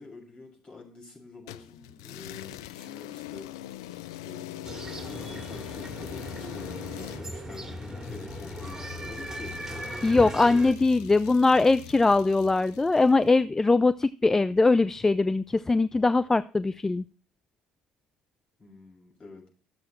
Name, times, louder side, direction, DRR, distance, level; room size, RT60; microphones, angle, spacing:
voice 1, 0.0-3.5 4.2-4.7 5.0-9.9 18.6-19.5, left 3 dB, 45° left, -1 dB, 6.5 m, -46 dB
sound 1, 1.5-13.2, left 14 dB, 80° left, 0.4 m, -42 dB
sound 2, 4.6-10.7, right 1 dB, 20° right, 2.6 m, -38 dB
voice 2, 10.0-17.0, left 3 dB, 20° left, 15 dB, 0.4 m, -22 dB
12.0 x 7.6 x 4.4 m, 0.40 s
hypercardioid pair, 60°, 2 cm